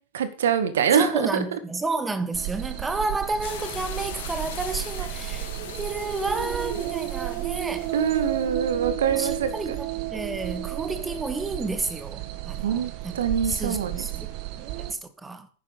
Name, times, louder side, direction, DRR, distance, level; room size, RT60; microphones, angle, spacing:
voice 1, 0.1-1.6 7.9-9.8 12.6-14.1, right 7 dB, 60° right, 1.8 m, -24 dB
voice 2, 1.0-7.9 9.1-13.1 13.4-14.3 14.8-15.5, right 3 dB, 10° right, 1.6 m, -31 dB
sound 1, 2.3-14.9, right 14 dB, 45° right, 1.5 m, -33 dB
sound 2, 3.4-8.5, left 9 dB, 55° left, 2.2 m, -41 dB
11.5 x 10.0 x 5.5 m
figure-of-eight pair, 90°, 0 cm